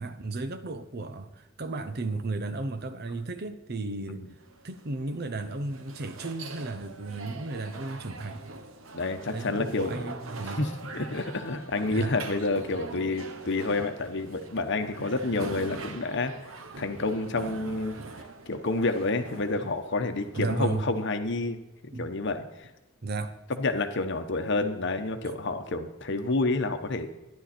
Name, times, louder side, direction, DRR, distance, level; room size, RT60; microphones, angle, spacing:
voice 1, 0.0-4.3 4.6-8.5 9.3-10.7 11.8-12.1 19.6-19.7 20.3-20.9 21.9-22.1 23.0-23.4, right 3 dB, 55° right, 0.8 m, -34 dB
sound 1, 4.4-21.4, right 3 dB, 90° right, 1.0 m, -43 dB
voice 2, 8.9-10.2 10.6-16.3 16.8-18.0 18.5-21.6 21.8-22.7 23.5-27.1, left 3 dB, 60° left, 1.0 m, -29 dB
12.5 x 10.5 x 4.4 m
head